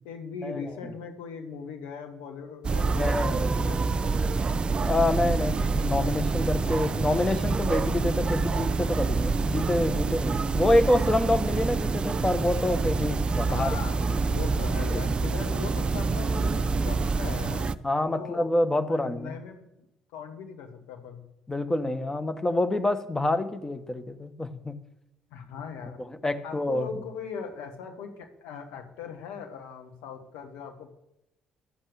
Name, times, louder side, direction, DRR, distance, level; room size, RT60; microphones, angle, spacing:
voice 1, 0.0-4.4 12.2-12.6 13.5-14.0 14.3-18.5 18.8-19.6 20.1-21.3 25.3-26.0 26.4-30.9, left 6 dB, 65° left, 4 dB, 1.8 m, -40 dB
sound 1, 2.6-17.7, right 4 dB, 35° right, 0.5 m, -27 dB
voice 2, 3.0-3.6 4.9-13.7 14.1-14.2 14.9-15.0 17.8-19.4 21.5-24.7 26.0-26.9, left 1 dB, 15° left, 9 dB, 1.3 m, -27 dB
12.5 x 7.9 x 6.9 m, 0.87 s
figure-of-eight pair, 50°, 3 cm